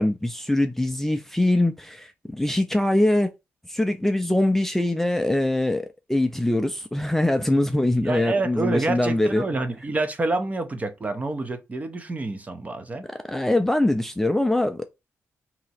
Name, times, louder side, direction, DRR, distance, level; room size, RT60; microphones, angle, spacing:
voice 1, 0.0-3.3 3.7-9.5 13.0-14.9, left 1 dB, 5° left, 0.4 m, -23 dB
voice 2, 8.0-13.1, right 2 dB, 30° right, 0.7 m, -28 dB
2.9 x 2.8 x 4.2 m
cardioid pair, 95°, 5 cm